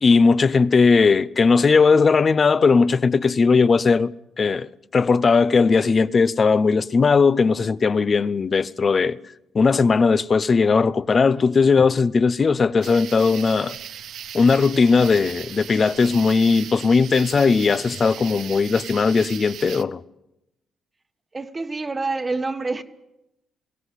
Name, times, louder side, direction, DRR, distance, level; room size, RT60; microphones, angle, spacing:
voice 1, 0.0-9.2 9.5-13.8 14.3-20.0, left 4 dB, 40° left, 0.8 m, -18 dB
sound 1, 12.8-19.8, right 9 dB, 75° right, 0.9 m, -37 dB
voice 2, 21.3-22.8, right 3 dB, 25° right, 1.3 m, -27 dB
21.5 x 17.0 x 8.3 m
cardioid pair, 90°, 0 cm